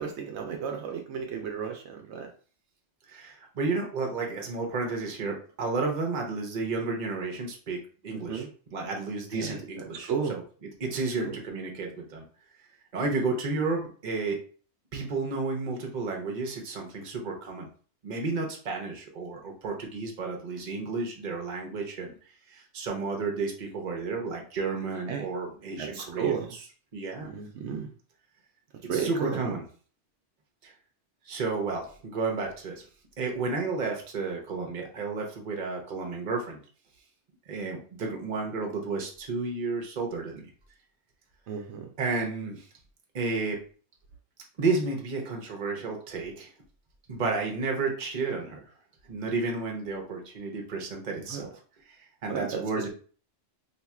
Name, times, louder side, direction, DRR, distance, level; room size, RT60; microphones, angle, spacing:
voice 1, 0.0-2.3 8.1-8.5 9.3-9.6 10.1-10.4 11.2-11.4 25.1-25.3 25.8-26.5 27.2-27.9 28.9-29.5 41.5-41.9 51.2-51.5 52.3-52.5, right 7 dB, 75° right, 2 dB, 0.9 m, -33 dB
voice 2, 3.1-8.4 8.7-12.2 12.9-14.4 14.9-17.7 18.0-22.1 22.5-26.6 26.9-27.3 28.9-29.6 30.6-30.7 31.3-32.8 33.2-36.6 37.5-40.4 42.0-42.7 43.1-43.6 44.6-46.5 47.1-48.6 49.1-51.4 52.2-52.9, right 3 dB, 45° right, 1 dB, 0.9 m, -32 dB
2.8 x 2.3 x 4.2 m, 0.42 s
omnidirectional pair, 1.2 m